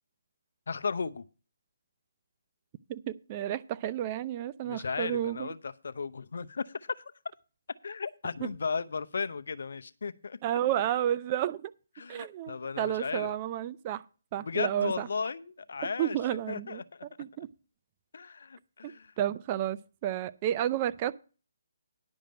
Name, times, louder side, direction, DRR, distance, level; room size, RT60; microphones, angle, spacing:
voice 1, 0.7-1.3 4.6-7.0 7.8-10.4 12.0-13.3 14.4-16.2 16.5-17.1 18.1-19.1, left 5 dB, 70° left, 0.7 m, -35 dB
voice 2, 2.9-5.5 10.4-11.7 12.1-14.0 14.3-15.1 16.0-16.8 17.2-17.5 19.2-21.1, right 11 dB, 30° right, 0.5 m, -31 dB
10.5 x 5.0 x 7.6 m
hypercardioid pair, 155°, 0 cm